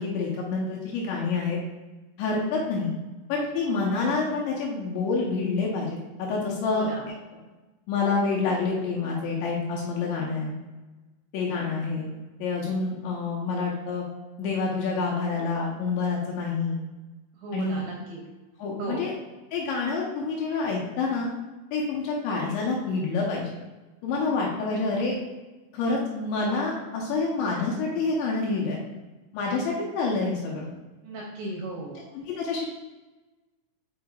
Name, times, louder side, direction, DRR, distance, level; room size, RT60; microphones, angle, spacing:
voice 1, 0.0-1.6 2.2-2.9 3.3-7.4 7.9-10.6 11.3-12.1 12.4-14.1 14.4-16.8 17.5-17.8 18.6-19.1 19.5-21.3 21.7-23.5 24.0-25.2 25.7-28.8 29.3-30.7 32.1-32.7, left 4 dB, 75° left, -3 dB, 2.9 m, -27 dB
voice 2, 6.7-7.1 17.4-18.2 18.8-19.0 31.0-32.0, right 2 dB, 80° right, -2 dB, 2.6 m, -36 dB
6.4 x 6.1 x 2.4 m, 1.2 s
omnidirectional pair, 5.8 m